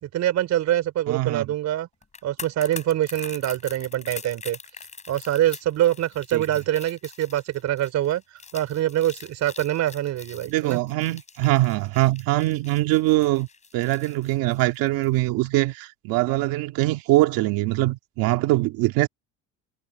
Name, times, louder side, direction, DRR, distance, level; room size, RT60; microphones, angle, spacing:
voice 1, 0.0-1.9 2.2-4.6 5.1-8.2 8.5-10.8, right 13 dB, 55° right, 4.4 m, -24 dB
voice 2, 1.1-1.5 6.3-6.4 10.5-13.5 13.7-19.1, right 18 dB, 80° right, 2.1 m, -23 dB
sound 1, 2.0-15.2 15.5-15.6, left 5 dB, 20° left, 7.2 m, -43 dB
cardioid pair, 150°, 34 cm